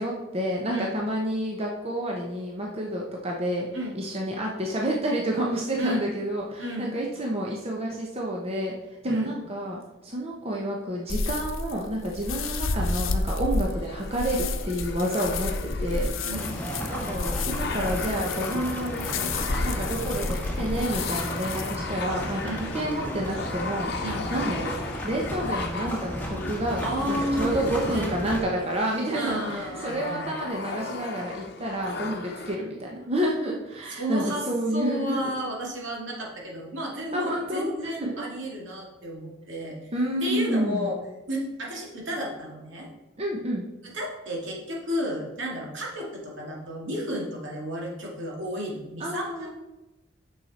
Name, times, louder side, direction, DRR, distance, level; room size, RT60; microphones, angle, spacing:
voice 1, 0.0-3.7 3.9-8.7 9.0-16.1 16.9-19.3 19.6-23.9 24.3-24.8 25.0-35.3 37.1-38.2 39.9-40.9 43.2-43.6 49.0-49.5, right 1 dB, 30° right, -1 dB, 0.9 m, -29 dB
voice 2, 6.6-6.9 9.1-9.4 16.2-16.7 22.4-22.7 24.0-24.2 26.8-28.2 29.1-30.3 33.9-34.4 34.7-39.8 40.2-41.0 41.3-42.9 43.8-49.5, equal, 70° right, -2 dB, 2.4 m, -32 dB
sound 1, 11.1-21.8, left 3 dB, 85° left, 0.8 m, -31 dB
sound 2, 12.6-32.6, left 3 dB, 55° left, 0.9 m, -37 dB
sound 3, 16.3-28.4, equal, 10° left, 1.4 m, -34 dB
8.9 x 6.6 x 4.2 m, 1.0 s
head